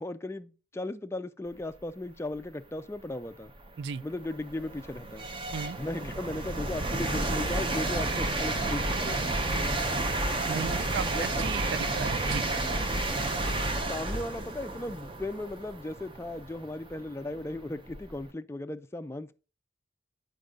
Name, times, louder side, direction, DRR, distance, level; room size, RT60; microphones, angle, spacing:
voice 1, 0.0-3.5 4.0-5.3 5.8-9.2 11.1-11.4 13.9-19.3, left 2 dB, 15° left, 0.3 m, -36 dB
sound 1, 2.8-2.9 3.5-18.3, right 2 dB, 30° right, 0.8 m, -31 dB
voice 2, 10.5-12.4, right 6 dB, 65° right, 0.3 m, -35 dB
8.0 x 5.3 x 3.7 m
head